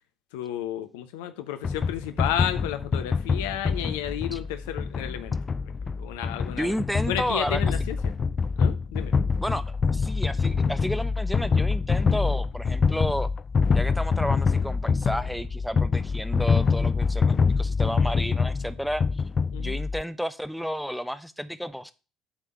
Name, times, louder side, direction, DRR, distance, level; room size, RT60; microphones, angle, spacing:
voice 1, 0.3-5.3 6.0-6.7 7.1-8.1 8.6-9.1 19.5-19.8, left 11 dB, 75° left, 9 dB, 0.8 m, -32 dB
sound 1, 1.6-20.0, left 5 dB, 35° left, 0.4 m, -25 dB
voice 2, 6.6-7.6 9.4-9.6 9.9-13.3 13.7-19.0 19.6-21.9, equal, ahead, 13 dB, 0.7 m, -31 dB
8.8 x 3.6 x 5.8 m, 0.33 s
hypercardioid pair, 55°, 0 cm